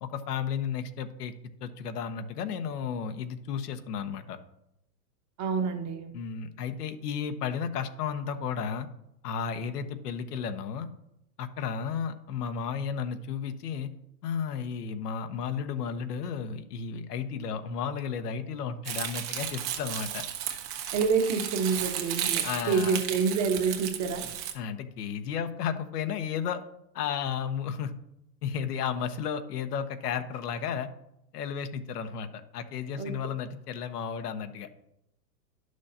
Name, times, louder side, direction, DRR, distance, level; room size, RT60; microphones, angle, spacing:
voice 1, 0.0-1.3 1.6-4.4 6.1-8.9 9.2-10.9 11.4-13.9 14.2-20.2 22.4-23.0 24.5-26.6 26.9-27.9 28.4-30.9 31.3-34.7, left 7 dB, 65° left, 8 dB, 1.1 m, -33 dB
voice 2, 5.4-6.1 20.9-24.3 33.0-33.1, right 5 dB, 30° right, 4 dB, 1.4 m, -27 dB
Crumpling crinkling, 18.8-24.5, right 10 dB, 55° right, 1.6 m, -34 dB
11.5 x 6.3 x 2.8 m, 0.83 s
hypercardioid pair, 115°, 50 cm